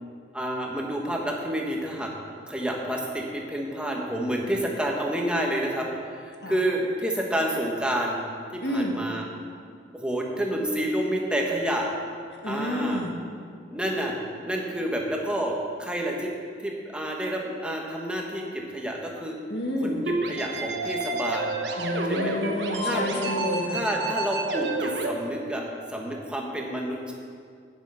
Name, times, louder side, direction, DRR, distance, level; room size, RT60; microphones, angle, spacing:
voice 1, 0.3-2.1 2.5-8.2 8.5-9.2 9.9-11.9 12.4-13.0 13.7-14.1 14.4-16.3 16.6-19.4 19.8-20.0 20.2-21.6 22.1-22.3 22.8-23.4 23.7-27.1, right 1 dB, 5° right, -1 dB, 1.4 m, -29 dB
voice 2, 8.6-9.0 12.4-13.1 19.5-20.1 21.8-23.8, left 1 dB, 65° left, 1 dB, 1.8 m, -29 dB
sound 1, 20.1-25.1, right 2 dB, 75° right, 1.2 m, -29 dB
9.9 x 9.4 x 6.3 m, 2.2 s
head